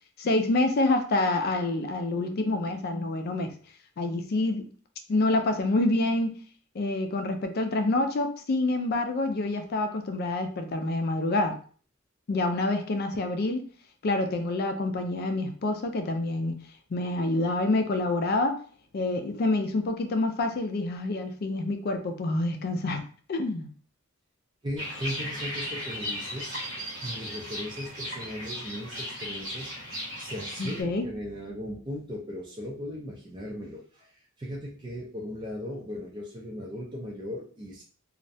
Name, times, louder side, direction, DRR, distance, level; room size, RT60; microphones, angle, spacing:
voice 1, 0.2-3.5 4.0-4.7 5.1-6.3 6.7-11.6 12.3-13.7 14.0-16.6 16.9-18.6 18.9-23.0 23.3-23.7 30.6-31.1, left 2 dB, 50° left, 6 dB, 0.4 m, -27 dB
voice 2, 24.6-26.6 27.0-37.8, equal, 25° right, -4 dB, 0.4 m, -38 dB
sound 1, 24.8-30.8, equal, 80° right, 0.9 m, -36 dB
2.3 x 2.1 x 2.6 m, 0.43 s
head